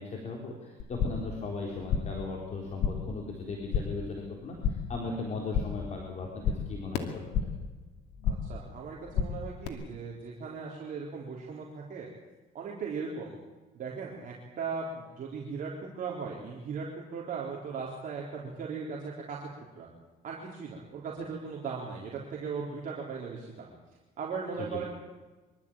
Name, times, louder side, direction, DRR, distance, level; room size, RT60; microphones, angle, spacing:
voice 1, 0.0-7.2 24.6-24.8, left 3 dB, 40° left, -1 dB, 4.3 m, -37 dB
sound 1, 0.8-1.4 1.6-2.3 2.5-3.2 3.4-4.0 4.3-5.0 5.3-5.9 6.2-7.7 8.0-8.6 8.9-9.7, left 7 dB, 75° left, 2.5 m, -32 dB
voice 2, 8.3-12.1 12.5-13.3 13.7-16.9 17.1-19.5 19.8-19.9 20.2-23.7 24.2-24.8, right 5 dB, 50° right, -3 dB, 4.0 m, -38 dB
24.5 x 13.5 x 8.9 m, 1.2 s
cardioid pair, 110°, 17 cm